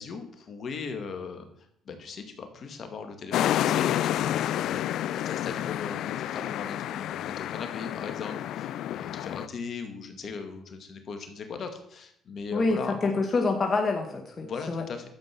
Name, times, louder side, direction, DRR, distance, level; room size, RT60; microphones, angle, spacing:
voice 1, 0.0-1.5 1.9-13.0 14.4-15.1, left 5 dB, 55° left, 6 dB, 2.2 m, -39 dB
sound 1, 3.3-9.5, left 12 dB, 70° left, 0.4 m, -29 dB
voice 2, 12.5-14.8, left 3 dB, 40° left, 3 dB, 1.8 m, -27 dB
11.5 x 8.0 x 6.2 m, 0.68 s
supercardioid pair, 60°, 0 cm